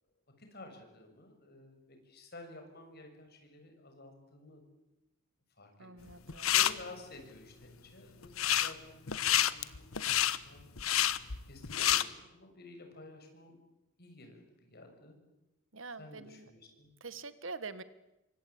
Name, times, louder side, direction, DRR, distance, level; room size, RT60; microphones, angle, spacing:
voice 1, 0.4-4.6 5.6-10.0 10.4-10.7 11.4-13.6 14.0-15.2 16.0-16.9, left 2 dB, 45° left, 4 dB, 6.8 m, -52 dB
voice 2, 5.8-6.5 15.7-16.5 17.0-17.8, right 4 dB, 60° right, 13 dB, 1.6 m, -45 dB
sound 1, 6.1-6.7 8.2-8.7 9.1-12.0, left 11 dB, 75° left, 1.2 m, -28 dB
27.0 x 24.5 x 8.7 m, 0.92 s
head